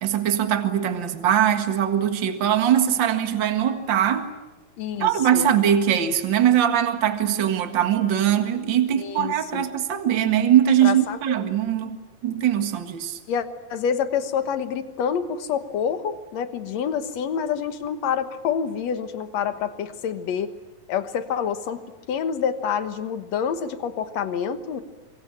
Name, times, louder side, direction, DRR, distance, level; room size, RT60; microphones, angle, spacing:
voice 1, 0.0-4.3 5.0-12.0 12.2-13.2, right 10 dB, 40° right, 2.0 m, -21 dB
voice 2, 4.8-5.5 9.0-9.6 10.8-11.2 13.3-20.5 20.9-21.8 22.1-24.8, left 7 dB, 60° left, 2.3 m, -27 dB
26.0 x 23.0 x 8.8 m
omnidirectional pair, 3.8 m